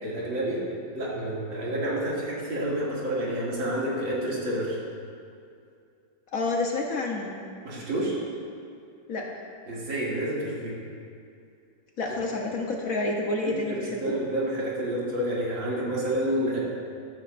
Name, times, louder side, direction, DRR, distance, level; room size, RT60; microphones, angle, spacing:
voice 1, 0.0-4.8 7.6-8.2 9.7-10.7 13.4-16.6, right 1 dB, 80° right, -6 dB, 3.1 m, -29 dB
voice 2, 6.3-7.4 9.1-9.3 12.0-14.2, left 2 dB, 55° left, 0 dB, 1.1 m, -29 dB
13.0 x 12.5 x 2.5 m, 2.4 s
omnidirectional pair, 2.1 m